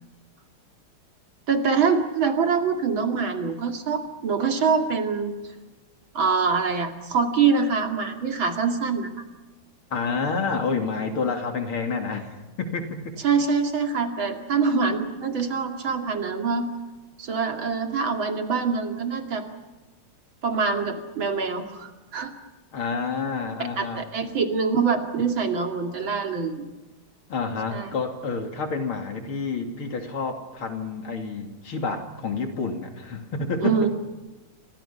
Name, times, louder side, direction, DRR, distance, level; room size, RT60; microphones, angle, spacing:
voice 1, 1.5-5.3 6.1-9.1 13.2-16.7 17.2-19.4 20.4-22.3 23.8-26.7 27.7-28.0 33.6-33.9, right 5 dB, 65° right, 4 dB, 3.2 m, -24 dB
voice 2, 9.9-13.2 22.7-24.1 27.3-33.8, left 4 dB, 80° left, 5 dB, 3.5 m, -29 dB
29.5 x 25.0 x 5.8 m, 1.2 s
omnidirectional pair, 2.3 m